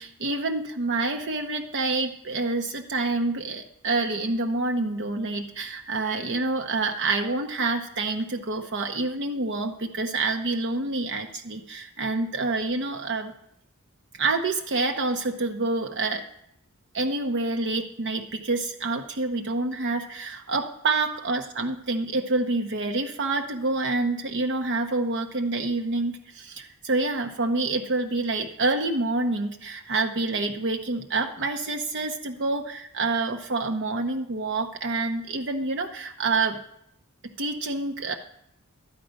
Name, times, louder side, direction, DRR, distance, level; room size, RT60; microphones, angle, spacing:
voice 1, 0.0-13.3 14.2-16.2 16.9-36.6 37.4-38.1, right 3 dB, 55° right, 4 dB, 0.8 m, -27 dB
12.5 x 9.3 x 5.2 m, 0.75 s
head